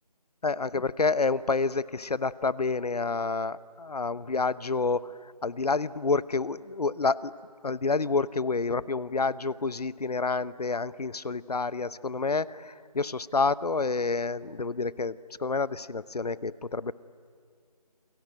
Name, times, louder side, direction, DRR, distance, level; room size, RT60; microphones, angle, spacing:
voice 1, 0.4-7.4 7.6-16.9, left 4 dB, 65° left, 20 dB, 0.8 m, -29 dB
28.5 x 21.5 x 9.0 m, 2.1 s
figure-of-eight pair, 165°, 21 cm